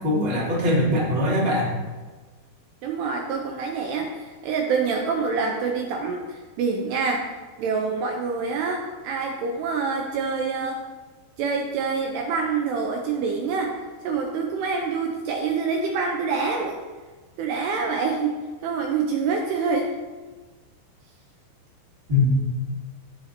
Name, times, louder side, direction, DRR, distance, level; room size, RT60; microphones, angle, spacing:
voice 1, 0.0-1.7 22.1-22.4, left 1 dB, 25° right, -7 dB, 1.3 m, -21 dB
voice 2, 2.8-10.8 11.4-13.7 14.0-16.8 17.4-19.9, right 5 dB, 85° right, 1 dB, 2.5 m, -26 dB
15.0 x 5.7 x 2.8 m, 1.3 s
omnidirectional pair, 5.3 m